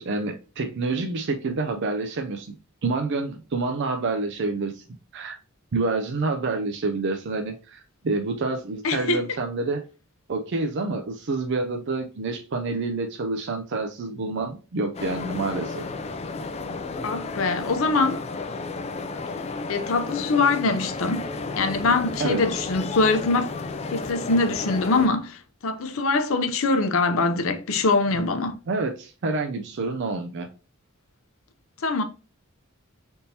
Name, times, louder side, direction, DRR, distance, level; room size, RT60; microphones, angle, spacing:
voice 1, 0.0-2.6 2.8-4.8 5.1-5.4 5.7-9.8 10.3-15.8 22.2-22.6 28.7-30.5, right 3 dB, 55° right, 0.5 m, -28 dB
voice 2, 8.8-9.2 17.0-18.2 19.7-21.3 21.6-23.5 23.9-28.6 31.8-32.0, left 3 dB, 70° left, 0.6 m, -23 dB
sound 1, 14.9-25.1, left 3 dB, 30° left, 0.3 m, -33 dB
3.5 x 2.8 x 4.0 m
head